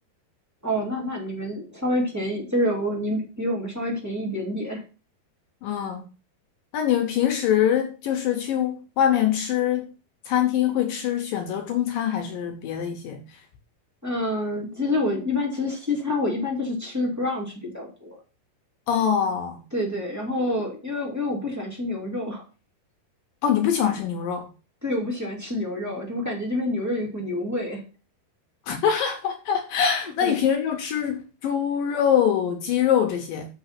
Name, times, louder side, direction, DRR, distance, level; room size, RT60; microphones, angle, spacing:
voice 1, 0.6-4.8 14.0-18.1 19.7-22.4 24.8-27.8 30.2-30.4, left 1 dB, 10° right, 1.2 m, -27 dB
voice 2, 5.6-6.0 6.7-9.9 10.3-13.2 18.9-19.6 23.4-24.5 28.7-33.5, left 9 dB, 75° left, 2.2 m, -24 dB
6.9 x 5.8 x 5.8 m
omnidirectional pair, 4.7 m